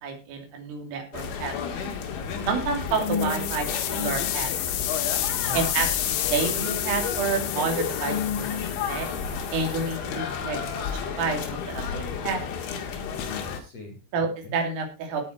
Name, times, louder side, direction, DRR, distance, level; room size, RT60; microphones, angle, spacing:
voice 1, 0.0-1.9 2.5-4.8 5.5-8.5 8.8-9.1 9.5-10.9 11.2-12.4 14.1-15.3, right 4 dB, 80° right, 3 dB, 5.6 m, -29 dB
sound 1, 1.1-13.6, left 6 dB, 70° left, 4.2 m, -31 dB
voice 2, 2.2-2.5 5.3-5.6 13.1-14.6, equal, 40° left, 3 dB, 3.0 m, -42 dB
sound 2, 2.9-10.0, left 12 dB, 90° left, 4.0 m, -30 dB
17.5 x 6.5 x 4.5 m, 0.29 s
omnidirectional pair, 5.7 m